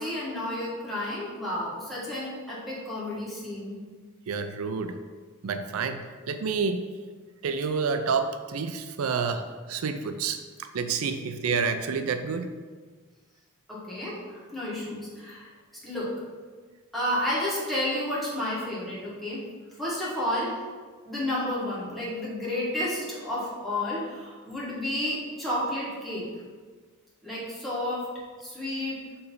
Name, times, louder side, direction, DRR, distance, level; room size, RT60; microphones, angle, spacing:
voice 1, 0.0-3.8 13.7-15.5 15.8-16.1 16.9-19.5 19.8-20.6 21.1-26.2 27.2-28.0 28.4-29.0, left 1 dB, ahead, -9 dB, 1.7 m, -31 dB
voice 2, 4.3-5.0 5.4-6.9 7.4-12.5, right 5 dB, 80° right, 8 dB, 0.4 m, -29 dB
6.9 x 3.2 x 5.4 m, 1.5 s
head